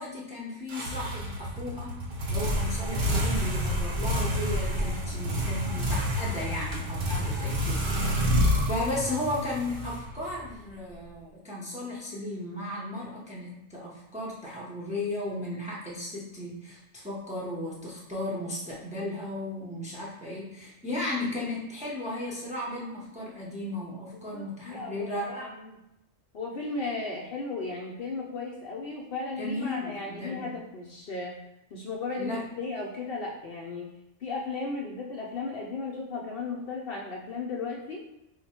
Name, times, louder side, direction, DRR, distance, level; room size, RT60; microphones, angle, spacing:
voice 1, 0.0-1.9 2.3-7.9 8.1-25.5 29.4-30.5 32.2-32.4, left 1 dB, 10° right, -5 dB, 0.6 m, -35 dB
sound 1, 0.7-10.5, equal, 50° right, 0.7 m, -28 dB
voice 2, 24.1-25.8 26.3-31.3 31.7-33.9 34.2-38.0, left 3 dB, 60° left, -2 dB, 0.7 m, -35 dB
3.6 x 2.2 x 4.2 m, 0.86 s
omnidirectional pair, 1.2 m